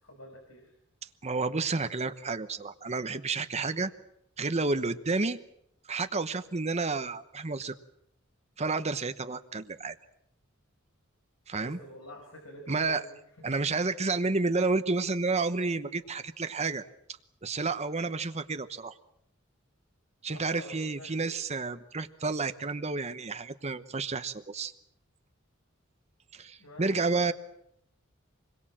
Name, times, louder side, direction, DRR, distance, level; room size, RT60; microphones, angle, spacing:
voice 1, 0.0-0.7 11.6-13.2 20.3-21.3 26.6-27.1, equal, 90° left, 3 dB, 5.6 m, -47 dB
voice 2, 1.2-3.9 4.4-5.4 5.8-7.7 8.6-9.9 11.5-11.8 12.7-13.1 13.4-16.8 17.4-18.9 20.2-24.7 26.3-27.3, right 3 dB, 30° right, 9 dB, 1.0 m, -30 dB
26.5 x 22.0 x 7.6 m, 0.73 s
head